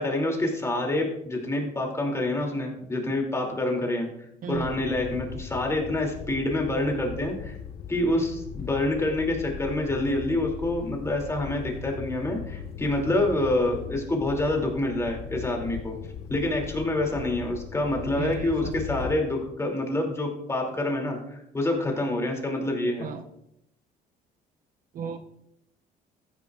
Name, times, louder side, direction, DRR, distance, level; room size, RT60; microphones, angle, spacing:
voice 1, 0.0-4.1 4.5-7.5 7.9-16.0 16.3-23.1, left 1 dB, 15° left, 1 dB, 2.7 m, -27 dB
sound 1, 4.5-19.1, left 7 dB, 70° left, 1.1 m, -39 dB
voice 2, 18.2-18.7 23.0-23.2 24.9-25.2, right 7 dB, 55° right, 7 dB, 0.8 m, -34 dB
14.0 x 10.5 x 2.4 m, 0.78 s
cardioid pair, 110°, 17 cm